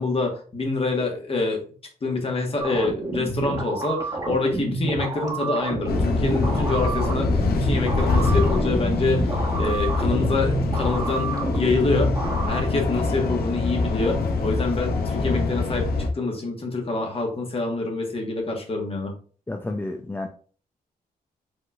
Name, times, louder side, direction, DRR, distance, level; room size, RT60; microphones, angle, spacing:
voice 1, 0.0-1.6 2.0-15.9 16.1-19.1, left 3 dB, 40° left, 1 dB, 1.4 m, -26 dB
sound 1, 2.6-12.6, right 3 dB, 25° right, 1.3 m, -29 dB
sound 2, 5.9-16.1, left 3 dB, 80° left, 0.7 m, -24 dB
voice 2, 19.5-20.3, left 2 dB, 15° left, 3 dB, 0.4 m, -30 dB
5.2 x 3.9 x 2.4 m, 0.42 s
cardioid pair, 90°, 15 cm